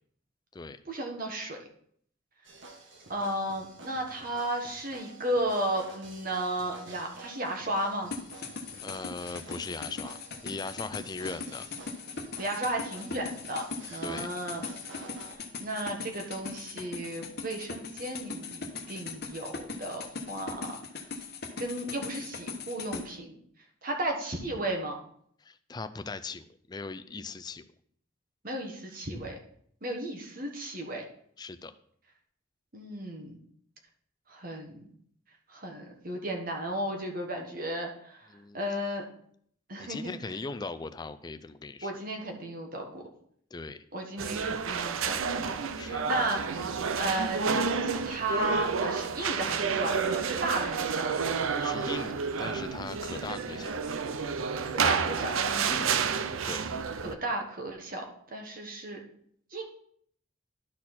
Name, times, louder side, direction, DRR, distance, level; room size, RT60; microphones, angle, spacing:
voice 1, 0.8-1.6 3.1-8.1 12.4-13.6 13.9-14.6 15.6-20.8 21.6-23.3 23.8-25.0 28.4-29.4 29.8-31.0 32.7-33.4 34.3-34.8 35.5-38.3 38.5-39.1 39.7-40.4 41.8-43.0 43.9-45.4 45.8-51.3 54.7-56.0 57.0-59.0 59.5-59.6, right 1 dB, 45° right, 2 dB, 1.3 m, -34 dB
sound 1, 2.4-15.3, right 3 dB, 65° right, 1.4 m, -50 dB
sound 2, 8.1-23.0, left 4 dB, 50° left, 1.1 m, -39 dB
voice 2, 8.8-10.2 10.4-11.6 14.0-14.3 25.4-27.7 31.4-31.7 38.3-38.7 39.8-41.9 43.5-43.8 45.8-46.0 51.6-53.7 56.4-56.6, left 3 dB, 20° left, 10 dB, 0.4 m, -39 dB
sound 3, 44.2-57.2, right 5 dB, 85° right, 0.6 m, -30 dB
12.0 x 4.3 x 4.2 m, 0.65 s
head